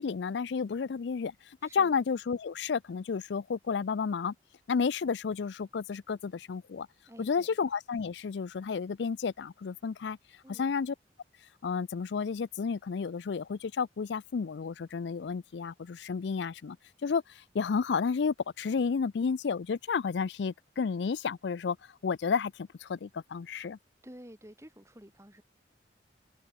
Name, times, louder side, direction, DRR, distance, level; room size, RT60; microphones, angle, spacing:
voice 1, 0.0-4.3 4.7-6.9 7.2-10.2 10.5-10.9 11.6-16.8 17.0-23.8, left 5 dB, 80° left, 0.4 m, -31 dB
voice 2, 1.6-1.9 7.1-7.6 10.4-10.8 24.0-25.4, equal, 15° right, 3.1 m, -51 dB
head